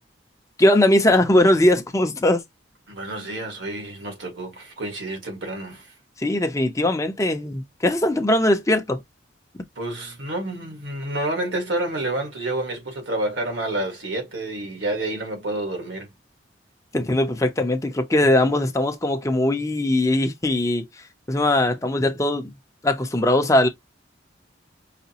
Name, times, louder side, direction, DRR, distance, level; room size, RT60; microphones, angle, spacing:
voice 1, 0.6-2.4 6.2-9.0 16.9-20.9 21.3-22.5 22.8-23.7, left 1 dB, 15° left, 0.6 m, -20 dB
voice 2, 2.9-5.9 9.7-16.1, right 1 dB, 80° right, 1.7 m, -29 dB
5.0 x 2.1 x 2.8 m
head